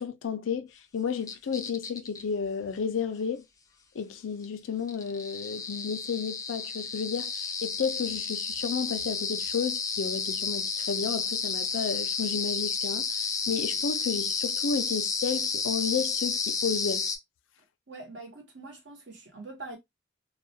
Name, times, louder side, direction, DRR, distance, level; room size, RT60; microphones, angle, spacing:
voice 1, 0.0-3.4 3.9-13.1 13.5-17.1, left 6 dB, 90° left, 0.4 m, -32 dB
sound 1, 1.3-2.2 4.4-4.5 4.9-17.2, left 5 dB, 20° left, 0.3 m, -31 dB
voice 2, 17.9-19.8, right 3 dB, 65° right, 1.0 m, -43 dB
2.3 x 2.1 x 2.6 m
head